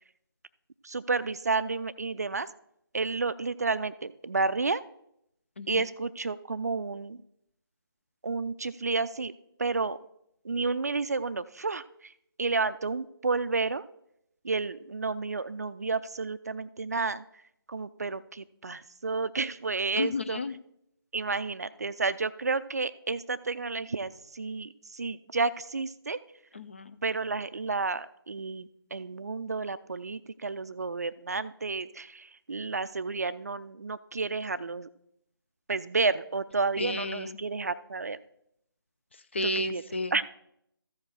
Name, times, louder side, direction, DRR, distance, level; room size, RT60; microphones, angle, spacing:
voice 1, 0.8-2.5 2.9-4.8 5.7-7.2 8.2-9.3 9.6-10.0 10.4-12.1 12.4-13.8 14.4-17.2 17.7-20.4 21.1-26.2 27.0-34.9 35.7-38.2 39.4-39.8 40.1-40.2, right 4 dB, 40° right, 15 dB, 0.4 m, -31 dB
voice 2, 20.0-20.5 26.5-26.9 36.8-37.4 39.3-40.1, left 2 dB, 30° left, 11 dB, 0.4 m, -32 dB
14.0 x 5.1 x 4.7 m, 0.76 s
figure-of-eight pair, 155°, 13 cm